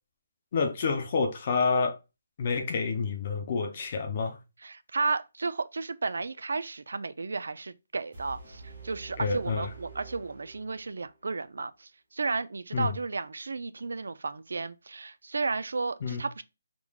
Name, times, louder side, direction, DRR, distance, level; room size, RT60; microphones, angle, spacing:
voice 1, 0.5-2.0 2.4-4.4 9.2-9.7 12.7-12.9 16.0-16.2, left 4 dB, 25° left, 0.5 m, -28 dB
voice 2, 4.6-16.4, right 4 dB, 75° right, 0.4 m, -33 dB
sound 1, 8.1-11.1, right 3 dB, 25° right, 2.0 m, -47 dB
4.8 x 3.7 x 2.3 m
hypercardioid pair, 180°, 0 cm